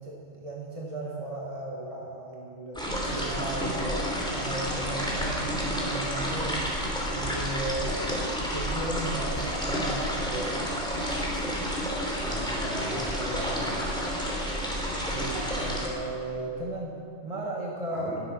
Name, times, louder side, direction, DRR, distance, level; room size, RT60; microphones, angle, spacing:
voice 1, 0.0-6.8 7.1-10.8 15.0-18.1, right 2 dB, 30° right, -2 dB, 1.4 m, -36 dB
sound 1, 2.7-15.9, equal, 5° left, 3.0 m, -30 dB
voice 2, 12.2-13.9 17.9-18.2, left 1 dB, 60° right, -6 dB, 4.2 m, -36 dB
20.0 x 8.5 x 6.0 m, 2.5 s
omnidirectional pair, 1.2 m